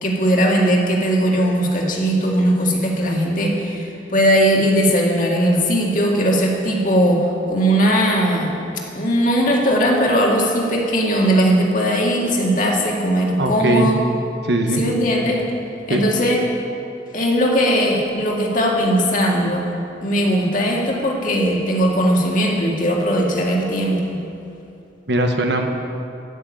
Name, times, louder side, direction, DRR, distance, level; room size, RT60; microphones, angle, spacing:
voice 1, 0.0-8.5 8.9-14.0 14.8-15.4 15.9-16.4 17.1-19.7 20.0-24.2, equal, 45° left, -2 dB, 2.0 m, -18 dB
voice 2, 13.4-13.9 14.4-14.8 15.9-16.0 25.1-25.7, right 1 dB, 65° right, 4 dB, 1.2 m, -19 dB
14.0 x 6.5 x 8.6 m, 2.6 s
head